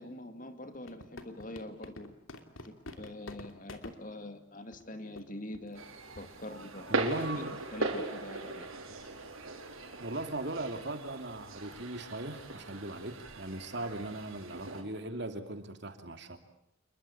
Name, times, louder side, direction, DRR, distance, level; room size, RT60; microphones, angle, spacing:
voice 1, 0.0-2.1 2.6-5.8 6.1-7.2 7.7-8.7 9.0-9.1, left 1 dB, 40° left, 8 dB, 2.5 m, -44 dB
sound 1, 0.7-4.0 4.7-4.8 5.2-5.3 5.5-5.8 6.2-6.4, left 2 dB, 80° left, 2.9 m, -46 dB
sound 2, 5.7-14.8, right 2 dB, 85° right, 4.9 m, -39 dB
voice 2, 6.9-7.5 10.0-16.4, right 1 dB, 55° right, 7 dB, 2.9 m, -38 dB
28.5 x 22.5 x 8.7 m, 0.71 s
head